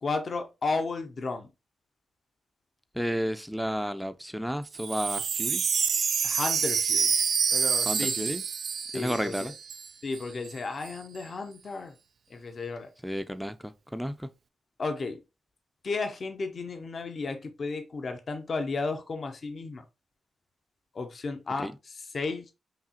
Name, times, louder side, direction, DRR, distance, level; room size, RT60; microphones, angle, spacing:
voice 1, 0.0-1.5 6.2-7.1 7.5-8.1 8.9-9.5 10.0-11.9 12.3-12.9 14.8-15.2 15.8-19.8 20.9-21.7 22.1-22.5, left 3 dB, 50° left, 0.8 m, -33 dB
voice 2, 2.9-5.7 7.9-8.4 8.9-9.5 13.0-14.3 21.6-21.7, equal, ahead, 0.5 m, -32 dB
Wind chime, 4.7-9.9 10.1-10.2 10.4-10.9, right 6 dB, 65° right, 0.3 m, -27 dB
4.8 x 2.8 x 2.8 m
hypercardioid pair, 40°, 0 cm